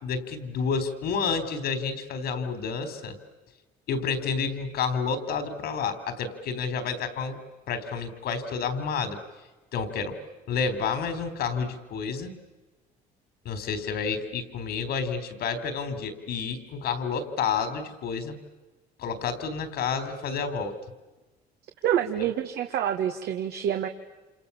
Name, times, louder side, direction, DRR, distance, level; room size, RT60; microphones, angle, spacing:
voice 1, 0.0-3.2 3.9-7.4 7.7-9.2 9.7-10.2 10.5-12.3 13.4-18.3 19.0-20.8 22.2-22.3, left 5 dB, 70° left, 10 dB, 4.1 m, -30 dB
voice 2, 21.8-23.9, right 10 dB, 75° right, 5 dB, 1.8 m, -27 dB
29.0 x 28.0 x 7.2 m, 1.1 s
cardioid pair, 110°, 17 cm